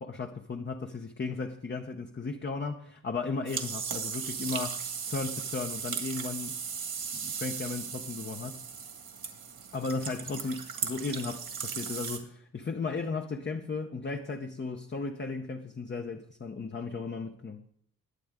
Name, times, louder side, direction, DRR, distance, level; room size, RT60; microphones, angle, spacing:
voice 1, 0.0-4.8 5.1-6.6 7.1-8.6 9.7-17.6, left 4 dB, 30° left, 0.8 m, -35 dB
sound 1, 3.5-12.2, right 6 dB, 70° right, 2.1 m, -37 dB
20.5 x 9.3 x 3.6 m
wide cardioid pair, 130°, 37 cm